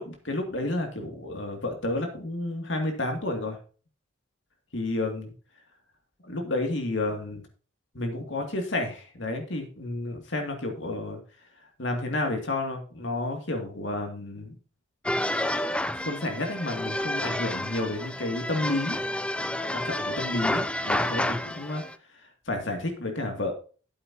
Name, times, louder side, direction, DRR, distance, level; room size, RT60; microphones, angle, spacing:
voice 1, 0.0-3.6 4.7-5.3 6.2-7.4 7.9-11.2 11.8-14.6 15.9-19.0 19.7-21.8 22.5-23.5, left 2 dB, 65° left, 3 dB, 2.4 m, -31 dB
sound 1, 15.1-22.0, left 1 dB, 5° left, 0.5 m, -30 dB
12.5 x 8.7 x 2.8 m, 0.38 s
head